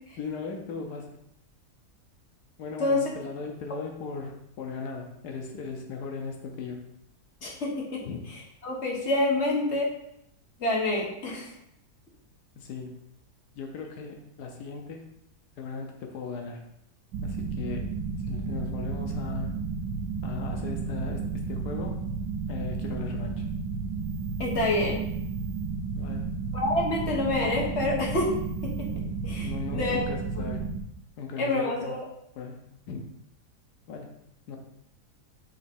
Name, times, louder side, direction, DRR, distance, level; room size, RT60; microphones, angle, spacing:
voice 1, 0.2-1.2 2.6-6.8 8.0-8.2 12.6-13.0 13.6-15.2 15.6-16.7 17.2-19.6 20.2-22.0 22.5-23.4 25.9-26.3 29.4-30.7 31.2-32.0 32.4-33.0 33.9-34.2 34.5-34.6, left 4 dB, 85° left, 3 dB, 1.3 m, -37 dB
voice 2, 7.4-8.0 8.6-9.9 10.6-11.5 24.4-25.0 26.5-28.3 28.6-28.9 29.2-30.0 30.3-30.5 31.4-32.0, left 2 dB, 45° left, -2 dB, 1.6 m, -27 dB
sound 1, 17.1-30.8, right 4 dB, 75° right, 1.1 m, -32 dB
7.0 x 3.2 x 4.3 m, 0.77 s
omnidirectional pair, 1.7 m